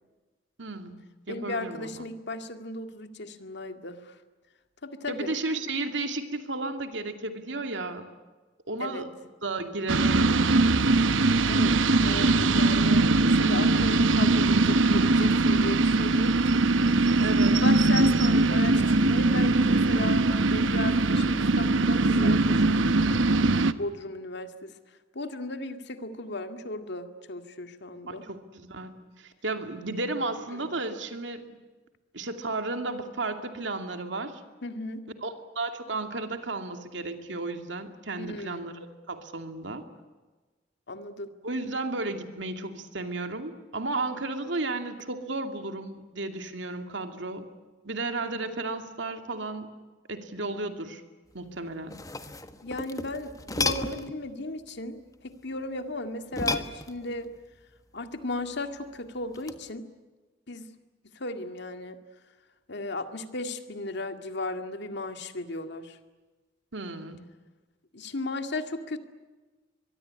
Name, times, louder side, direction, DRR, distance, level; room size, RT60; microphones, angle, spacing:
voice 1, 0.6-0.9 1.3-2.1 5.1-8.1 8.7-9.1 9.4-10.5 17.2-17.6 28.1-31.5 32.1-34.4 35.2-38.7 39.1-39.9 41.4-47.5 47.8-49.7 50.1-51.0 51.3-52.0 66.7-67.2, right 2 dB, 70° right, 6 dB, 2.5 m, -33 dB
voice 2, 1.3-4.1 4.8-5.3 8.8-9.0 9.9-10.1 11.5-11.8 12.0-16.5 17.5-23.0 23.8-24.7 25.1-28.2 30.6-30.7 34.6-35.0 38.2-38.6 40.9-41.3 52.6-57.3 57.9-59.8 60.5-60.7 61.0-62.0 62.7-66.0 67.9-69.0, left 2 dB, 65° left, 7 dB, 2.2 m, -36 dB
sound 1, 9.9-23.7, right 3 dB, 85° right, 1.0 m, -21 dB
sound 2, 51.7-54.2 56.3-57.3 59.3-59.7, left 2 dB, 20° left, 1.4 m, -33 dB
24.0 x 23.0 x 9.8 m, 1.3 s
head